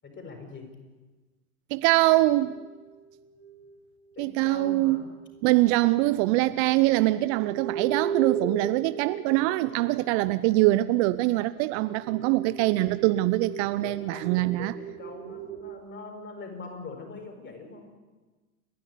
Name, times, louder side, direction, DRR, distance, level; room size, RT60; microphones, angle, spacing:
voice 1, 0.0-0.7 4.1-5.1 13.8-17.9, left 4 dB, 25° left, 6.6 m, -42 dB
voice 2, 1.7-2.5 4.2-5.0 5.4-14.7, right 18 dB, 50° right, 0.8 m, -23 dB
sound 1, 2.1-3.8 5.4-5.5 6.8-10.4 11.3-15.7, right 7 dB, 65° right, 3.3 m, -37 dB
30.0 x 11.5 x 10.0 m
hypercardioid pair, 90°, 44 cm